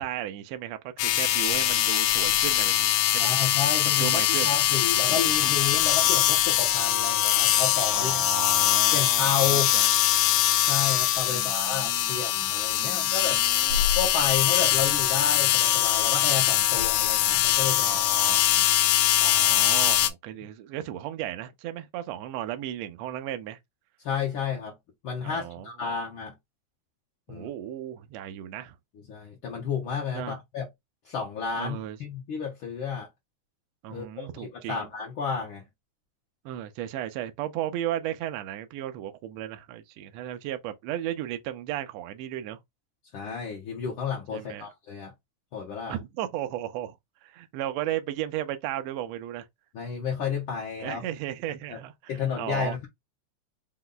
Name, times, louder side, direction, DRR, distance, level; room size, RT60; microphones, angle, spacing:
voice 1, 0.0-3.3 4.0-4.5 7.9-9.9 11.3-12.1 12.8-13.9 17.8-18.5 19.2-23.6 25.2-25.9 27.3-28.7 30.1-30.4 31.5-32.0 33.8-34.9 36.4-42.6 44.3-44.7 45.9-47.0 47.2-49.5 50.8-52.8, right 12 dB, 90° right, 1.5 m, -35 dB
sound 1, 1.0-20.1, left 13 dB, 85° left, 2.1 m, -23 dB
voice 2, 3.2-8.2 8.9-9.7 10.7-13.4 14.0-17.9 18.3-18.4 24.0-24.7 25.0-26.3 27.3-27.5 29.1-30.7 31.0-33.1 33.9-35.6 43.1-45.1 45.5-46.0 49.7-51.0 51.7-51.8 52.1-52.9, left 6 dB, 70° left, 1.2 m, -31 dB
5.3 x 2.3 x 3.8 m
omnidirectional pair, 3.6 m